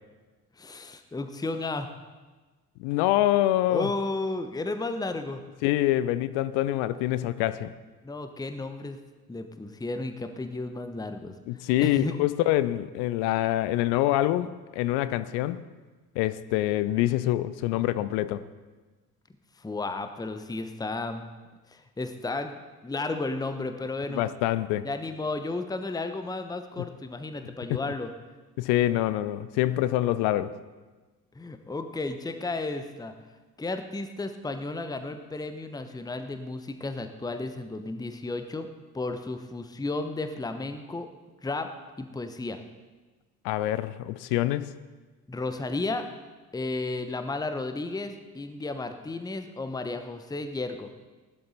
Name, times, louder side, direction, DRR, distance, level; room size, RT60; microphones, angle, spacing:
voice 1, 0.6-1.9 3.7-5.4 8.0-9.0 9.3-11.3 11.8-12.2 19.6-21.2 21.7-22.5 22.8-24.2 24.8-28.1 31.3-33.1 33.6-38.7 38.9-41.1 41.4-41.7 42.0-42.6 45.3-46.1 46.5-50.9, left 2 dB, 10° left, 8 dB, 1.0 m, -33 dB
voice 2, 2.8-3.9 5.6-7.7 11.5-15.6 16.2-18.4 24.1-24.8 26.8-26.9 27.7-27.8 28.6-30.6 43.4-44.7, left 14 dB, 55° left, 15 dB, 0.7 m, -25 dB
18.5 x 12.0 x 4.1 m, 1.3 s
figure-of-eight pair, 50°, 49 cm